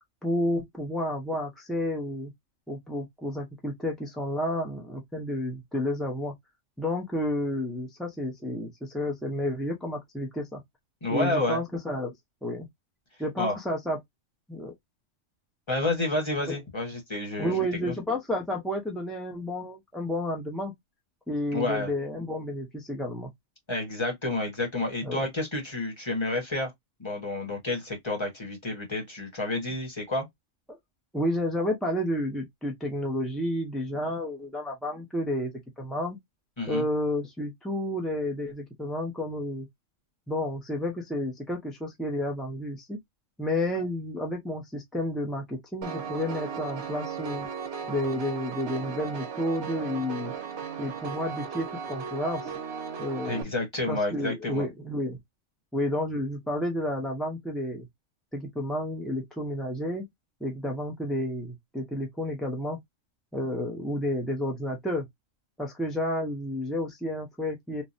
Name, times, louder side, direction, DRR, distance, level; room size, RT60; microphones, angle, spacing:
voice 1, 0.2-2.3 2.7-6.3 6.8-10.6 11.1-12.1 12.4-12.7 13.2-14.0 14.5-14.7 16.5-16.6 17.4-20.7 21.3-23.3 25.0-25.3 31.1-35.5 35.8-36.2 36.7-39.7 40.3-43.0 43.4-47.5 47.9-50.3 50.8-52.4 53.0-53.5 53.9-55.2 55.7-57.9 58.3-60.1 60.4-62.8 63.3-65.1 65.6-67.8, left 1 dB, ahead, 0.4 m, -31 dB
voice 2, 11.0-11.6 13.4-13.6 15.7-17.9 21.5-21.9 23.7-26.7 27.0-30.3 36.6-36.8 53.2-54.6, left 2 dB, 25° left, 1.1 m, -30 dB
Piano, 45.8-53.4, right 6 dB, 65° right, 0.9 m, -36 dB
3.2 x 2.1 x 2.5 m
omnidirectional pair, 1.3 m